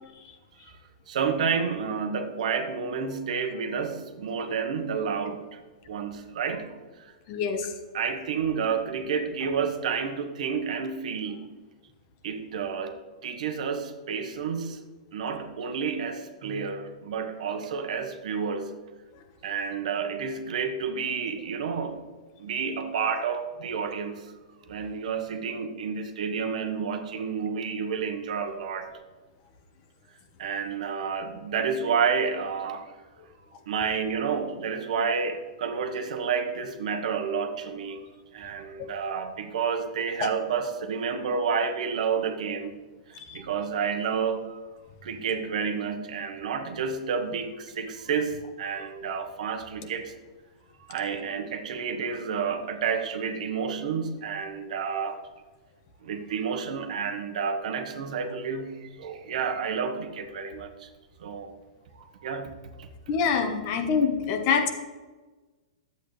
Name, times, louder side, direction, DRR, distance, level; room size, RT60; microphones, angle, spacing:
voice 1, 1.1-5.6 5.9-6.8 7.9-11.4 12.2-14.8 15.1-18.8 19.4-22.0 22.4-24.3 24.7-29.0 30.4-32.9 33.7-38.1 38.3-42.7 43.1-44.6 45.0-50.1 50.9-55.2 56.0-60.9 61.2-61.5 62.2-62.5 62.8-62.9, right 6 dB, 65° right, 7 dB, 1.1 m, -30 dB
voice 2, 7.3-7.7 33.9-34.0 40.2-40.3 43.1-43.4 63.1-64.7, left 6 dB, 35° left, 6 dB, 1.1 m, -26 dB
11.5 x 8.1 x 3.2 m, 1.3 s
hypercardioid pair, 155°, 4 cm